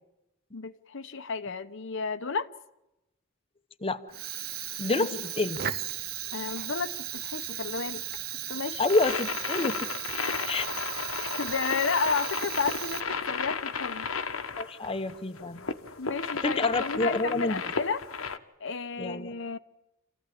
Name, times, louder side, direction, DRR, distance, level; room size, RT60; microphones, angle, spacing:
voice 1, 0.5-2.5 5.0-5.1 6.3-8.0 8.5-8.8 11.2-14.1 16.0-18.0 18.6-19.6, left 5 dB, 65° left, 1.0 m, -32 dB
Fire, 4.1-13.4, right 11 dB, 50° right, 0.9 m, -36 dB
voice 2, 4.8-5.6 8.8-9.9 10.4-10.7 14.6-15.7 16.4-17.6 19.0-19.3, left 3 dB, 25° left, 1.0 m, -28 dB
sound 1, 8.8-18.4, left 5 dB, 80° left, 1.4 m, -34 dB
27.0 x 15.5 x 10.0 m
head